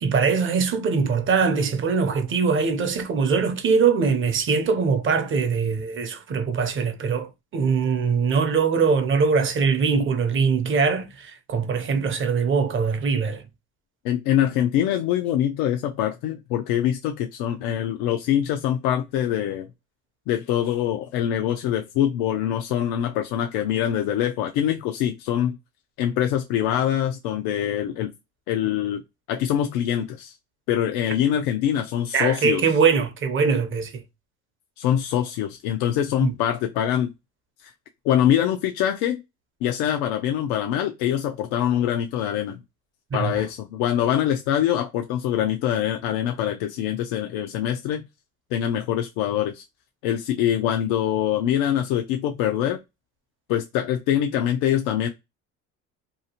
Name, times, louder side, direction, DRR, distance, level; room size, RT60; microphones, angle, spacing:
voice 1, 0.0-13.4 32.1-34.0 36.2-36.3 43.1-43.5, right 5 dB, 40° right, 0.7 m, -22 dB
voice 2, 14.0-19.7 20.3-25.6 26.0-28.1 28.5-29.0 29.3-30.3 30.7-32.6 34.8-37.1 37.6-37.7 38.0-39.2 39.6-42.6 43.1-48.0 48.5-49.6 50.0-52.8 53.5-55.1, left 10 dB, 85° left, 0.5 m, -24 dB
2.8 x 2.4 x 2.8 m
supercardioid pair, 100°, 32 cm